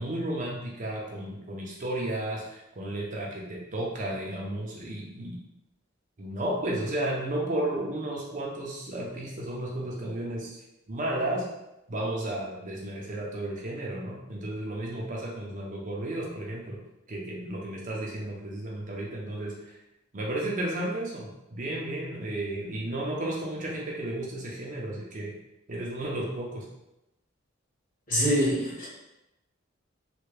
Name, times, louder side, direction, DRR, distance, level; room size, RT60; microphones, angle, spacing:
voice 1, 0.0-5.4 6.2-10.6 10.9-11.4 11.9-16.8 17.1-19.8 20.1-25.3 25.7-26.6, right 1 dB, 40° right, -3 dB, 0.6 m, -33 dB
voice 2, 28.1-28.9, equal, 40° left, -7 dB, 1.5 m, -25 dB
3.3 x 2.3 x 3.2 m, 0.91 s
head